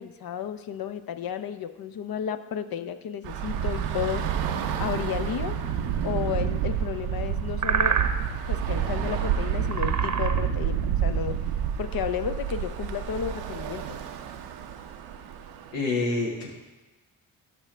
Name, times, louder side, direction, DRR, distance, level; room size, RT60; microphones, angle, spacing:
voice 1, 0.0-4.2 4.8-5.6 6.0-8.0 8.5-11.4 11.8-14.0, left 9 dB, 55° left, 11 dB, 0.7 m, -32 dB
Bus / Traffic noise roadway noise, 3.2-15.7, right 8 dB, 90° right, 0.6 m, -29 dB
sound 1, 5.5-14.0, right 6 dB, 45° right, 0.8 m, -34 dB
voice 2, 15.7-16.5, left 3 dB, 85° left, -3 dB, 1.8 m, -27 dB
12.5 x 5.1 x 3.3 m, 1.2 s
hypercardioid pair, 40°, 43 cm